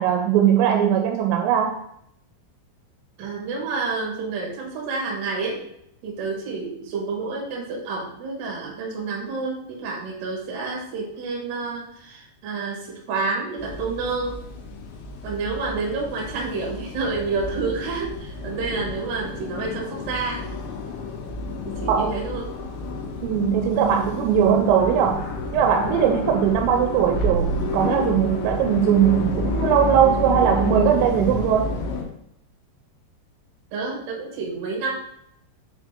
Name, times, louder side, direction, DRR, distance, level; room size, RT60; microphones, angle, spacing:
voice 1, 0.0-1.8 21.9-22.2 23.2-25.3 25.5-31.7, right 9 dB, 85° right, 3 dB, 3.1 m, -20 dB
voice 2, 3.2-5.6 6.0-14.3 15.2-20.4 21.6-22.5 33.7-34.9, right 4 dB, 60° right, -1 dB, 2.5 m, -29 dB
sound 1, 13.6-32.0, left 3 dB, 75° left, 3.1 m, -30 dB
7.0 x 4.1 x 3.6 m, 0.75 s
omnidirectional pair, 6.0 m